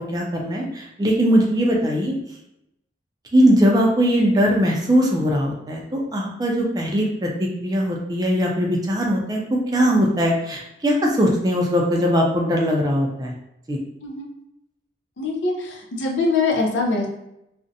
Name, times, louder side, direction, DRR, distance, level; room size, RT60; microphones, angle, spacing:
voice 1, 0.0-2.1 3.3-13.3 13.7-13.8, equal, 20° right, -1 dB, 0.4 m, -20 dB
voice 2, 15.2-17.1, left 3 dB, 90° left, 1 dB, 0.5 m, -23 dB
2.5 x 2.1 x 2.6 m, 0.82 s
head